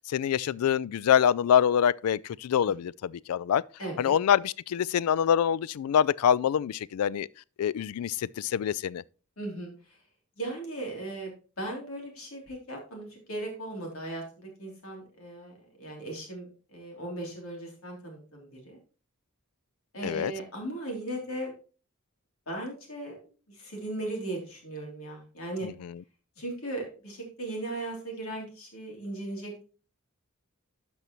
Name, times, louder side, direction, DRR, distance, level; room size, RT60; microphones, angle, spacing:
voice 1, 0.1-3.6 4.0-7.3 7.6-9.0 20.0-20.3 25.6-26.0, left 9 dB, 90° left, 0.3 m, -25 dB
voice 2, 3.8-4.1 9.4-10.0 10.4-18.8 19.9-21.5 22.5-23.2 23.5-25.7 26.4-29.6, right 1 dB, 70° left, 3.2 m, -37 dB
12.5 x 5.5 x 3.0 m
head